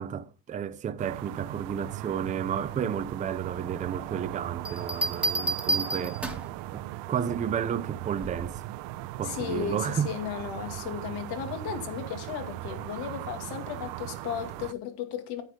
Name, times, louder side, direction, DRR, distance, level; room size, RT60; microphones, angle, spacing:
voice 1, 0.0-6.2 6.7-8.6 9.2-10.1, right 8 dB, 20° right, 0.5 m, -32 dB
sound 1, 1.0-14.7, right 16 dB, 75° right, 0.8 m, -38 dB
Bell, 4.7-6.6 8.2-8.6, right 2 dB, 5° right, 1.5 m, -30 dB
voice 2, 9.2-15.4, left 8 dB, 60° left, 2.3 m, -35 dB
9.9 x 9.6 x 3.7 m
cardioid pair, 160°, 42 cm